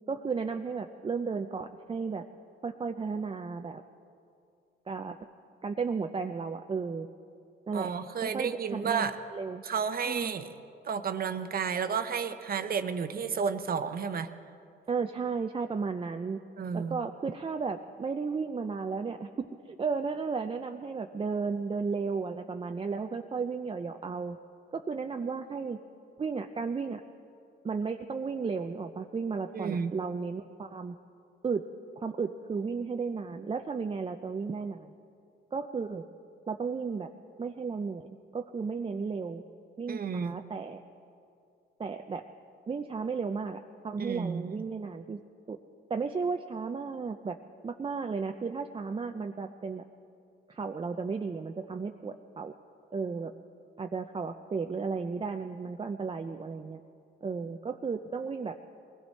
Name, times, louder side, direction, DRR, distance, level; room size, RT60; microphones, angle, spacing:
voice 1, 0.1-2.2 2.6-3.8 4.9-5.2 5.6-7.1 7.7-7.9 8.2-9.6 10.1-10.3 14.9-16.4 16.7-24.4 24.7-25.8 26.2-27.0 27.6-31.0 31.4-31.6 32.0-34.9 35.5-36.0 36.5-37.1 37.4-39.4 39.8-40.8 41.8-42.2 42.7-45.2 45.5-45.6 45.9-47.4 47.6-49.8 50.5-52.5 52.9-53.3 53.8-56.8 57.2-58.6, right 5 dB, 25° right, 5 dB, 0.5 m, -34 dB
voice 2, 7.7-9.2 9.6-10.5 10.8-14.3 16.6-17.0 29.5-29.9 39.9-40.4 44.0-44.6, right 6 dB, 50° right, 10 dB, 0.9 m, -32 dB
21.5 x 16.0 x 4.2 m, 2.5 s
cardioid pair, 90°, 20 cm